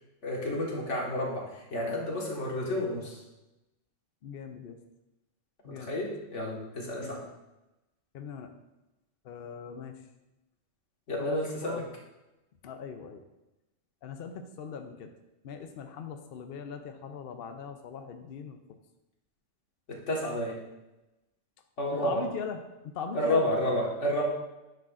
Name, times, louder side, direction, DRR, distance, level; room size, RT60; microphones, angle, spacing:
voice 1, 0.2-3.2 5.9-7.2 11.1-11.8 19.9-20.6 21.8-22.2 23.1-24.2, left 1 dB, 85° left, -2 dB, 1.9 m, -30 dB
voice 2, 4.2-4.8 5.6-5.9 7.0-7.2 8.1-8.5 9.2-10.0 11.2-11.9 12.6-13.3 14.0-15.1 15.4-18.6 22.0-23.4, left 6 dB, 60° left, 6 dB, 0.8 m, -40 dB
9.6 x 6.9 x 2.5 m, 0.98 s
omnidirectional pair, 1.2 m